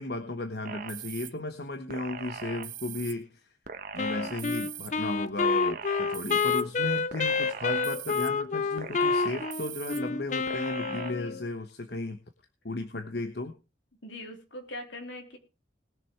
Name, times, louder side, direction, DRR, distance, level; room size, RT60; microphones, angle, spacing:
voice 1, 0.0-3.5 3.9-12.2 12.6-13.5, left 2 dB, 55° left, 7 dB, 1.1 m, -35 dB
sound 1, 0.7-1.3 1.9-3.1 3.7-4.9 5.4-6.6 7.1-8.3 8.8-10.0 10.5-11.1, right 7 dB, 45° right, 1.2 m, -40 dB
Wind instrument woodwind instrument, 4.0-11.5, left 4 dB, 40° left, 0.6 m, -28 dB
voice 2, 4.2-4.7 10.9-11.4 14.0-15.4, left 1 dB, 75° left, 4 dB, 3.6 m, -43 dB
20.0 x 7.0 x 4.6 m, 0.31 s
head